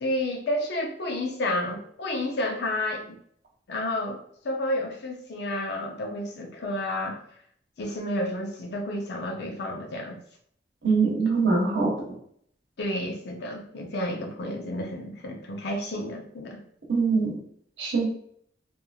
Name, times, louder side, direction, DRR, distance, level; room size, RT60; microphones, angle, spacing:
voice 1, 0.0-3.2 3.7-4.2 4.4-7.2 7.8-10.2 12.8-16.6, left 1 dB, 65° left, 2 dB, 0.6 m, -30 dB
voice 2, 10.8-11.9 16.9-17.3 17.8-18.1, right 4 dB, 80° right, -2 dB, 1.0 m, -23 dB
3.0 x 2.5 x 2.3 m, 0.65 s
head